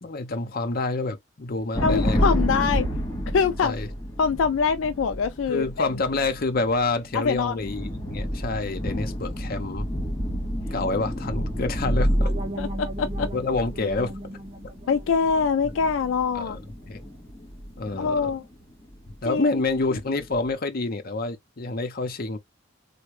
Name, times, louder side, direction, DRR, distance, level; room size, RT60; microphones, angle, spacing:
voice 1, 0.0-2.2 3.6-3.9 5.5-9.9 10.7-12.3 13.3-14.1 16.3-16.6 16.9-17.0 17.8-18.4 19.2-22.4, left 3 dB, 50° left, 0.7 m, -28 dB
voice 2, 1.8-2.9 3.3-3.7 4.2-5.9 7.1-7.7 12.6-13.3 14.9-16.6 18.0-18.4 19.3-19.5, left 5 dB, 80° left, 0.3 m, -24 dB
sound 1, 1.8-19.4 19.7-20.5, equal, 15° left, 2.1 m, -30 dB
sound 2, 12.2-17.1, right 1 dB, 30° right, 0.6 m, -40 dB
3.5 x 2.2 x 3.1 m
head